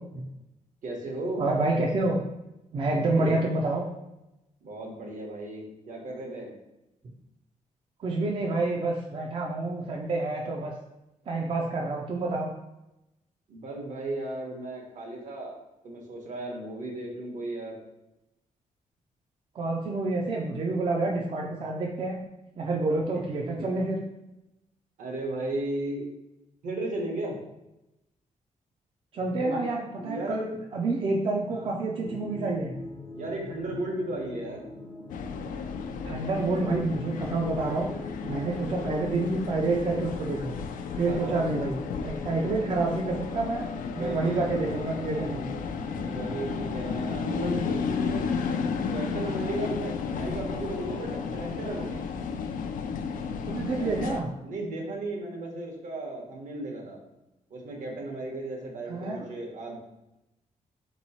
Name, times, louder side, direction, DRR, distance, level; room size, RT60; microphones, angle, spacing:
voice 1, 0.8-1.4 2.8-3.4 4.6-6.5 13.5-15.5 15.8-17.8 23.1-23.7 25.0-26.0 26.6-27.4 29.3-29.7 29.9-30.4 31.5-31.7 33.1-34.6 38.3-38.6 41.0-41.5 43.8-44.5 46.0-48.3 48.9-52.0 53.6-54.0 54.4-57.0 57.5-59.8, right 2 dB, 70° right, 0 dB, 1.1 m, -35 dB
voice 2, 1.4-2.2 2.7-3.8 8.0-10.7 11.3-12.5 19.5-22.2 22.6-24.1 29.1-30.5 30.7-32.7 36.0-37.9 38.2-40.6 41.0-41.7 42.0-43.7 43.9-45.5 53.5-54.3 58.9-59.3, right 2 dB, 40° right, -1 dB, 0.4 m, -28 dB
sound 1, 32.0-51.9, left 2 dB, 20° left, 0.5 m, -43 dB
sound 2, 35.1-54.2, left 5 dB, 85° left, 0.4 m, -33 dB
3.8 x 3.0 x 4.1 m, 0.92 s
wide cardioid pair, 175°, 13 cm